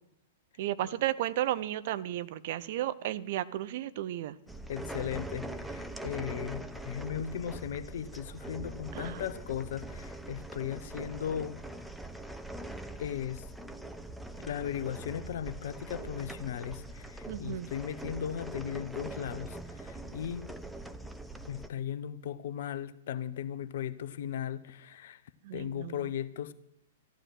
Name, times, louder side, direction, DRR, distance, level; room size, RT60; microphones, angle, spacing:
voice 1, 0.6-4.4 9.0-9.2 17.3-17.7 25.4-26.0, right 13 dB, 45° right, 0.6 m, -33 dB
sound 1, 4.5-21.7, right 1 dB, ahead, 0.7 m, -42 dB
voice 2, 4.7-11.9 13.0-13.5 14.5-20.5 21.5-25.2 25.5-26.5, left 9 dB, 55° left, 0.8 m, -37 dB
14.0 x 11.5 x 6.3 m
figure-of-eight pair, 105°, 0 cm